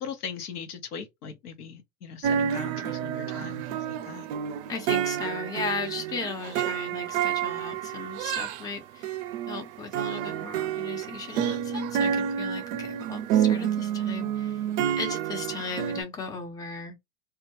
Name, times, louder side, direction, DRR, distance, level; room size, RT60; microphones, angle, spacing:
voice 1, 0.0-4.3 14.8-15.0, left 6 dB, 80° left, 0.8 m, -40 dB
sound 1, 2.2-8.6 9.0-16.0, right 9 dB, 50° right, 0.5 m, -29 dB
voice 2, 4.7-9.2 9.5-14.6 15.0-17.0, left 4 dB, 10° left, 0.5 m, -36 dB
2.3 x 2.1 x 2.8 m
hypercardioid pair, 95°, 45 cm